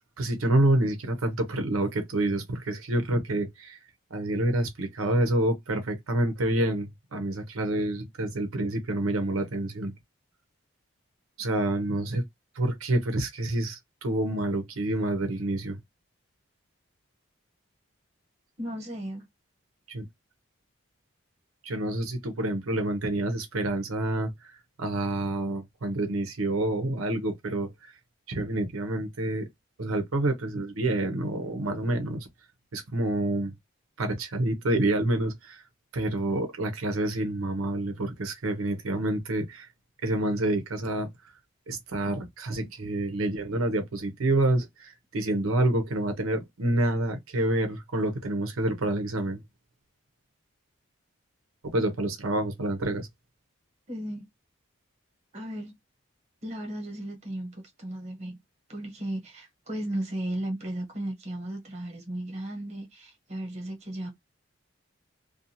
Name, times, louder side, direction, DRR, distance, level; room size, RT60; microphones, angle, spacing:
voice 1, 0.2-3.8 4.1-9.9 11.4-12.2 12.6-15.8 19.9-20.0 21.6-27.9 28.3-29.5 29.8-32.3 32.7-33.5 34.0-35.6 35.9-39.7 40.0-41.1 41.7-49.4 51.7-53.1, right 1 dB, 80° right, 0.7 m, -28 dB
voice 2, 18.6-19.3 53.9-54.3 55.3-55.7 56.4-58.4 58.7-64.1, right 1 dB, 30° right, 1.0 m, -35 dB
2.5 x 2.3 x 2.7 m
head